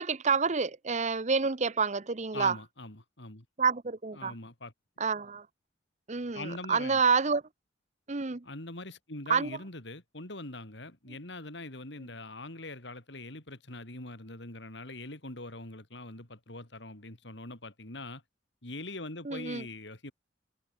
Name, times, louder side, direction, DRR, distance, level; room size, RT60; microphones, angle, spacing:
voice 1, 0.0-2.6 3.6-4.3 5.0-5.5 6.1-7.4 8.1-8.4 9.3-9.5 19.3-19.6, right 5 dB, 40° right, 0.8 m, -28 dB
voice 2, 2.3-3.5 4.1-4.7 6.3-7.0 8.4-18.2 18.6-20.1, left 2 dB, 65° left, 3.7 m, -42 dB
head